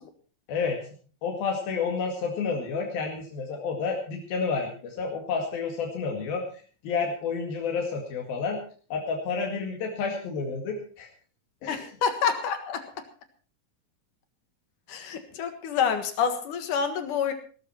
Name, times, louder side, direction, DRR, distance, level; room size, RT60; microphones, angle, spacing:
voice 1, 0.5-0.8 1.2-6.4 6.8-8.6 8.9-11.1 11.6-11.8, left 5 dB, 80° left, 1 dB, 3.9 m, -30 dB
voice 2, 11.7-12.8 14.9-17.3, left 7 dB, 65° left, 8 dB, 2.9 m, -27 dB
18.5 x 13.0 x 4.4 m, 0.40 s
omnidirectional pair, 4.2 m